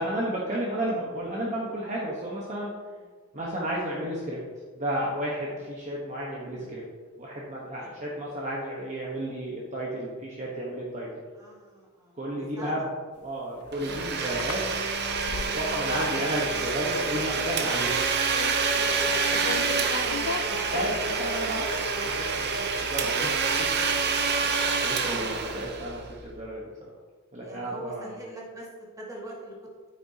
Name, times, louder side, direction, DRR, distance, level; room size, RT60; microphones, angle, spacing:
voice 1, 0.0-2.7 3.3-4.4 4.7-6.8 7.1-11.1 12.2-12.9 13.2-14.6 15.2-18.0 20.7-23.7 24.4-26.9 27.3-28.2, right 1 dB, 35° right, -4 dB, 1.2 m, -32 dB
voice 2, 11.3-12.7 18.7-20.1 22.5-23.1 27.4-28.7 29.0-29.7, right 1 dB, 15° right, -3 dB, 1.8 m, -43 dB
sound 1, 13.4-15.9 16.2-16.7 17.0-17.4 17.6-19.0 19.3-21.6, left 5 dB, 80° left, 0.5 m, -37 dB
Domestic sounds home sounds, 13.7-26.3, right 4 dB, 50° right, 0.8 m, -27 dB
9.5 x 8.8 x 2.8 m, 1.5 s
head